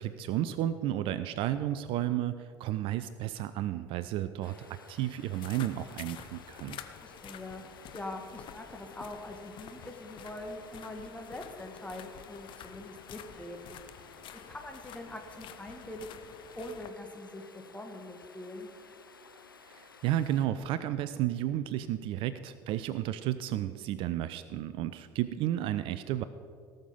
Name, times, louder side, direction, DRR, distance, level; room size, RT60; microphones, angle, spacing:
voice 1, 0.0-6.8 19.7-26.2, right 12 dB, 55° right, 13 dB, 0.5 m, -32 dB
Stream, 4.4-20.5, left 5 dB, 85° left, 0.6 m, -55 dB
sound 1, 5.3-16.9, left 10 dB, 50° left, 0.8 m, -49 dB
voice 2, 7.0-7.6 7.9-13.8 14.5-16.2 16.6-18.7, left 1 dB, 10° left, 3 dB, 1.9 m, -43 dB
18.0 x 6.5 x 5.4 m, 2.2 s
figure-of-eight pair, 55°, 11 cm